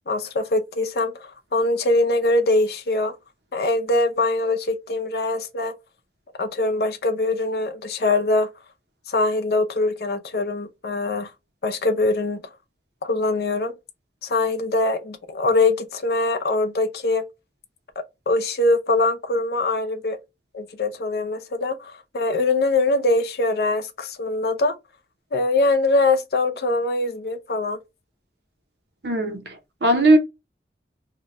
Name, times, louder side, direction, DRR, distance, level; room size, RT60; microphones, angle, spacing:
voice 1, 0.1-3.1 3.5-5.7 6.4-8.5 9.1-11.3 11.6-12.5 13.0-13.7 14.2-17.2 18.3-20.2 20.5-24.8 25.3-27.8, left 2 dB, 65° left, 0.5 m, -22 dB
voice 2, 29.0-30.2, right 1 dB, 75° right, 0.7 m, -19 dB
2.7 x 2.2 x 3.8 m
head